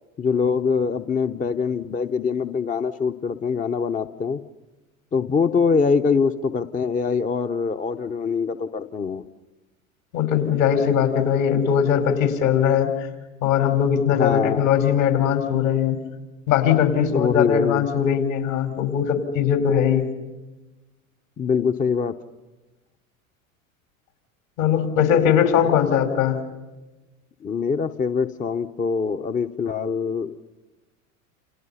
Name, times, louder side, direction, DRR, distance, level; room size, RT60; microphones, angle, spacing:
voice 1, 0.2-4.4 5.1-9.2 14.1-14.7 17.1-17.8 21.4-22.1 25.6-25.8 27.4-30.4, left 5 dB, 20° left, 8 dB, 0.8 m, -23 dB
voice 2, 10.1-13.1 13.4-16.0 16.5-20.1 24.6-26.4, left 8 dB, 70° left, 6 dB, 4.9 m, -20 dB
30.0 x 29.0 x 5.7 m, 1.2 s
hypercardioid pair, 85°, 42 cm